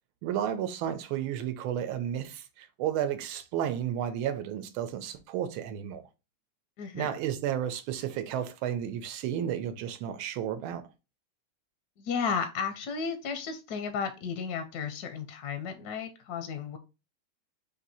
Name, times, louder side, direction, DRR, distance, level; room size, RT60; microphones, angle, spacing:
voice 1, 0.2-6.0 6.9-10.9, right 10 dB, 90° right, 1.5 m, -32 dB
voice 2, 6.8-7.1 12.0-16.8, left 6 dB, 70° left, 0.9 m, -33 dB
4.5 x 2.7 x 4.1 m
omnidirectional pair, 2.2 m